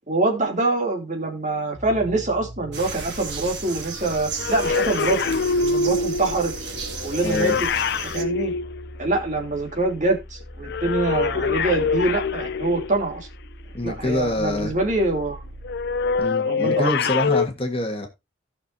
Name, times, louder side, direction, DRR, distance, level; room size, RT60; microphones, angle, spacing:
voice 1, 0.1-5.2 5.6-6.5 7.0-7.7 8.1-8.5 9.0-13.3 13.8-15.4 16.4-17.2, right 2 dB, 40° right, 3.0 m, -24 dB
sound 1, 1.7-16.2, equal, 10° right, 3.6 m, -41 dB
sound 2, 2.7-8.2, right 4 dB, 60° right, 2.1 m, -34 dB
sound 3, 4.4-9.4 10.6-13.2 15.6-17.5, left 4 dB, 55° left, 0.4 m, -25 dB
voice 2, 7.2-7.6 13.7-14.7 16.2-18.1, left 1 dB, 30° left, 1.6 m, -26 dB
16.5 x 6.3 x 2.7 m
head